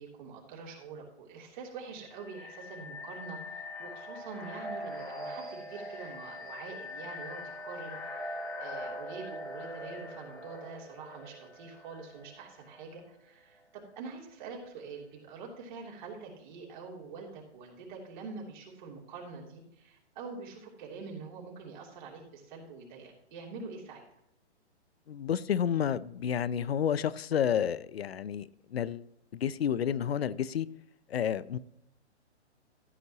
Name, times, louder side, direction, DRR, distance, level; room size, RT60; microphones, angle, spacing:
voice 1, 0.0-24.2, right 4 dB, 40° right, 3.1 m, -45 dB
sound 1, 2.0-12.8, left 1 dB, 5° left, 0.3 m, -42 dB
voice 2, 25.1-29.1 29.3-30.7 31.1-31.6, left 9 dB, 60° left, 0.7 m, -30 dB
15.0 x 8.0 x 2.9 m
figure-of-eight pair, 130°, 35 cm